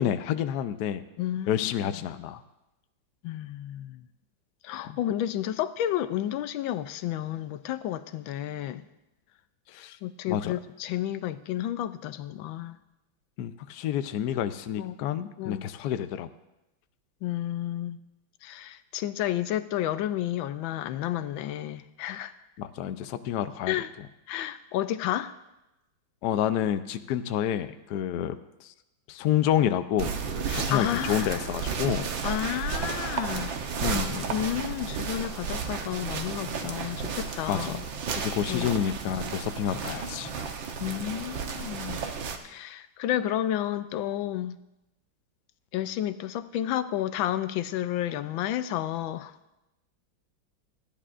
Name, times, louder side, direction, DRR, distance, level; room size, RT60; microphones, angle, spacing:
voice 1, 0.0-1.0 1.5-2.4 4.8-5.0 9.7-10.0 10.3-10.5 13.4-16.3 22.6-23.7 26.2-28.7 29.1-30.1 30.5-32.1 33.8-34.3 37.5-37.8 38.2-40.3, left 10 dB, 70° left, 1.0 m, -29 dB
voice 2, 1.2-1.9 3.2-4.0 4.6-8.8 10.0-12.8 14.8-15.0 15.4-15.6 17.2-18.0 18.4-22.3 23.7-23.9 24.3-25.3 30.5-31.4 32.2-33.6 33.8-34.0 34.3-37.8 38.5-38.7 40.8-42.0 42.4-44.6 45.7-49.3, left 12 dB, 90° left, 1.4 m, -31 dB
sound 1, 30.0-42.4, right 5 dB, 85° right, 1.7 m, -33 dB
27.5 x 10.0 x 2.5 m
omnidirectional pair, 2.1 m